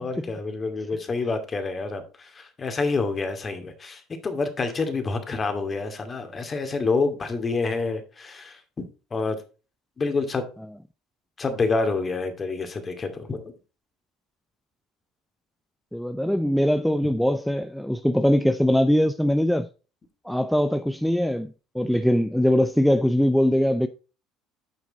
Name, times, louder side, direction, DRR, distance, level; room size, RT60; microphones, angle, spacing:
voice 1, 0.0-8.9 9.1-9.4 10.0-10.4 11.4-13.5, left 3 dB, 30° left, 2.3 m, -28 dB
voice 2, 15.9-19.7 20.3-23.9, equal, ahead, 0.6 m, -22 dB
9.4 x 5.9 x 4.0 m
hypercardioid pair, 70°, 0 cm